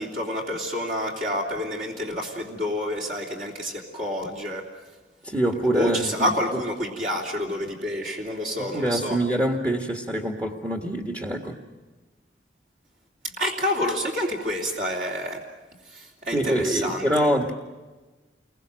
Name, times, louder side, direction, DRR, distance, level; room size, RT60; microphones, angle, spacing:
voice 1, 0.0-4.7 5.6-9.2 13.2-15.4 15.9-17.3, equal, 45° right, -2 dB, 3.2 m, -28 dB
voice 2, 5.2-6.3 8.6-11.6 16.3-17.5, right 1 dB, 20° right, 2 dB, 1.8 m, -25 dB
29.5 x 22.5 x 6.5 m, 1.2 s
head